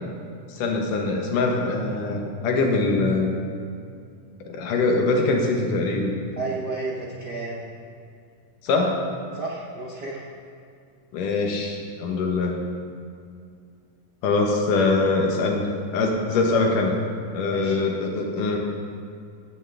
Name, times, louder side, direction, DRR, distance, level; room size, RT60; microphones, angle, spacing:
voice 1, 0.5-3.4 4.5-6.1 8.6-9.0 11.1-12.6 14.2-17.0 17.3-18.6, left 3 dB, 75° left, 1 dB, 2.8 m, -23 dB
voice 2, 6.4-7.7 9.3-10.2 17.5-17.7, right 3 dB, 80° right, -3 dB, 0.9 m, -32 dB
17.0 x 12.0 x 3.5 m, 2.3 s
omnidirectional pair, 3.8 m